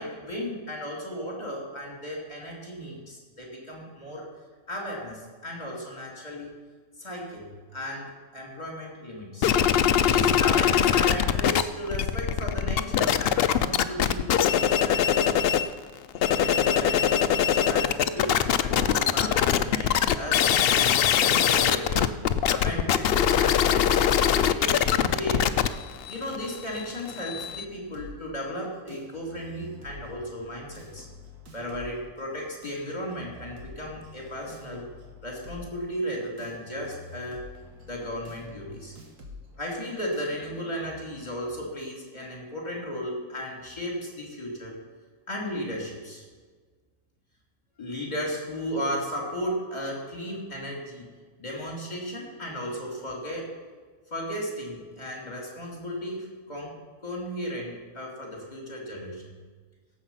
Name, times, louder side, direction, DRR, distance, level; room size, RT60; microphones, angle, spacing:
voice 1, 0.0-4.3 4.7-6.5 7.0-9.5 10.0-15.6 16.3-22.1 22.5-25.5 26.1-31.1 31.5-34.9 35.2-37.5 37.9-38.9 39.6-44.8 45.3-46.2 47.8-51.1 51.4-53.6 54.1-56.8 57.0-59.3, equal, 30° left, -2 dB, 3.4 m, -35 dB
sound 1, 9.4-11.6 11.9-15.7 16.1-27.6, left 9 dB, 70° left, 0.5 m, -22 dB
sound 2, 27.5-41.5, left 2 dB, 90° right, 2.1 m, -48 dB
17.5 x 7.4 x 5.7 m, 1.5 s
omnidirectional pair, 1.5 m